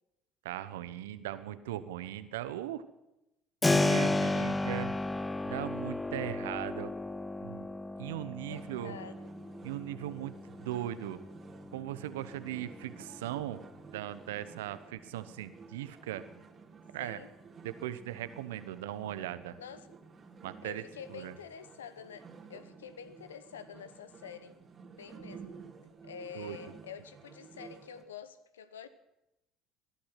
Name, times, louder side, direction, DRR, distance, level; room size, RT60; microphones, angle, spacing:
voice 1, 0.4-2.8 3.7-5.0 5.4-6.9 7.4-7.7 8.0-9.0 9.6-10.3 10.6-11.2 11.7-13.6 13.9-16.2 16.9-17.2 17.6-19.6 20.4-20.8 21.1-21.3 26.3-26.6, right 13 dB, 80° right, 14 dB, 0.9 m, -38 dB
Keyboard (musical), 3.6-14.3, left 2 dB, 15° left, 0.8 m, -34 dB
voice 2, 4.1-4.5 8.5-9.1 17.0-17.3 19.6-20.0 20.6-24.6 25.0-25.6 26.0-28.9, left 7 dB, 85° left, 13 dB, 0.9 m, -47 dB
sound 1, 8.5-28.0, right 5 dB, 40° right, 2.5 m, -53 dB
20.5 x 11.5 x 5.8 m, 0.91 s
hypercardioid pair, 60°, 0 cm